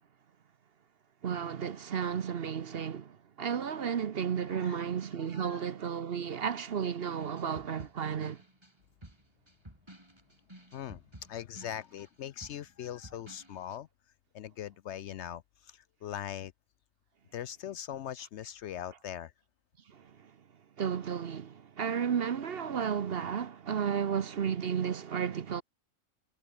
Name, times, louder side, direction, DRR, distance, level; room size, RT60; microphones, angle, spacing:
voice 1, 1.2-8.4 19.9-20.0 20.8-25.6, right 7 dB, 50° right, 0.9 m, -33 dB
voice 2, 4.5-4.8 5.2-5.6 10.7-11.0 11.3-13.9 14.3-16.5 17.3-19.3, left 10 dB, 65° left, 0.8 m, -41 dB
sound 1, 7.2-13.8, right 1 dB, 20° right, 4.3 m, -53 dB
omnidirectional pair, 1.4 m